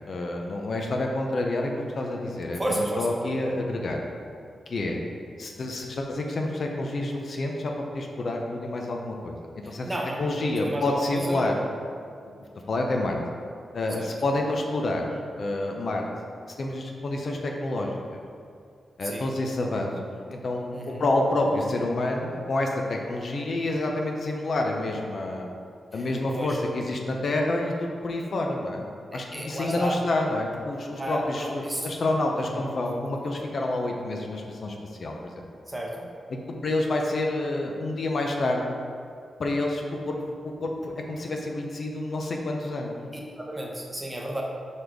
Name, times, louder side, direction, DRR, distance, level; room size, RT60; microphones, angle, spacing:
voice 1, 0.1-4.0 4.7-5.0 5.4-9.4 9.7-11.5 12.7-13.2 13.7-15.0 15.4-16.1 16.6-18.2 19.0-25.5 25.9-28.9 29.1-35.3 36.3-38.7 39.4-42.9, left 2 dB, 55° left, 1 dB, 0.6 m, -28 dB
voice 2, 2.6-3.3 9.6-11.6 14.0-14.1 19.0-19.3 20.7-21.0 25.9-26.1 26.3-26.6 29.1-30.0 31.0-31.8 32.5-32.6 35.7-36.1 43.4-44.4, right 1 dB, 15° right, -1 dB, 0.8 m, -32 dB
5.1 x 4.1 x 4.6 m, 2.3 s
wide cardioid pair, 130°, 0 cm